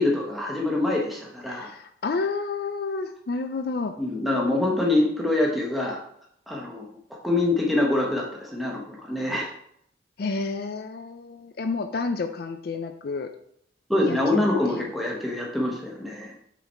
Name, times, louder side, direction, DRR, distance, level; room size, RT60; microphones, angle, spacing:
voice 1, 0.0-1.7 4.0-6.0 6.5-6.8 7.2-9.5 13.9-16.3, left 2 dB, ahead, -2 dB, 1.1 m, -25 dB
voice 2, 1.5-3.9 10.2-13.3 14.1-14.9, left 4 dB, 55° left, 7 dB, 0.4 m, -30 dB
5.7 x 4.0 x 4.3 m, 0.69 s
head